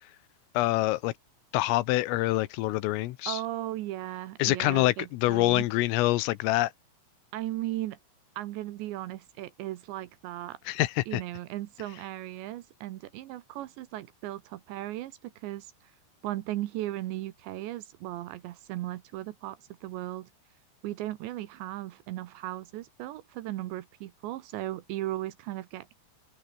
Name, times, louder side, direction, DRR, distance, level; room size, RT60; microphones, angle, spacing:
voice 1, 0.6-1.1 1.5-3.4 4.4-6.7 10.7-11.2, left 18 dB, 85° left, 3.6 m, -26 dB
voice 2, 3.3-5.7 7.3-8.0 8.4-10.6 11.1-15.7 16.2-20.3 20.8-25.9, right 15 dB, 75° right, 3.0 m, -36 dB
open air
omnidirectional pair, 5.8 m